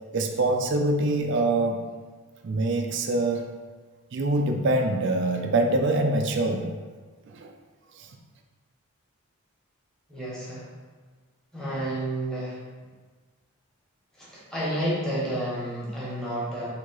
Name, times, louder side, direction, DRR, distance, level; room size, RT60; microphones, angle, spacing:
voice 1, 0.1-1.8 2.4-3.4 4.1-6.7 7.3-7.5 8.0-8.1, right 2 dB, 50° right, 4 dB, 0.4 m, -24 dB
voice 2, 10.1-10.7 11.5-12.6 14.1-16.7, right 1 dB, 5° left, -8 dB, 1.1 m, -30 dB
3.8 x 2.8 x 4.6 m, 1.4 s
head